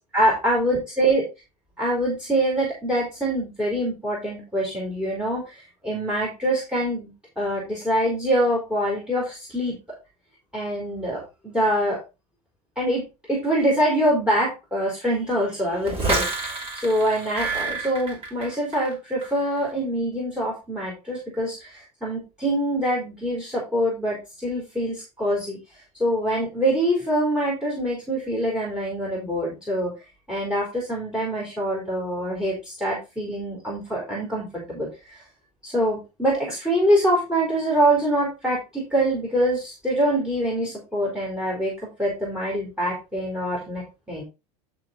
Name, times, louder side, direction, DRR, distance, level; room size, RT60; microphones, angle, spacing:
voice 1, 0.1-1.2 1.8-9.8 10.5-12.0 12.8-35.2 35.6-44.2, right 1 dB, 5° right, -3 dB, 4.7 m, -25 dB
sound 1, 15.8-18.9 19.2-19.6, right 3 dB, 30° right, 5.1 m, -28 dB
12.0 x 4.7 x 4.1 m, 0.27 s
hypercardioid pair, 95°, 21 cm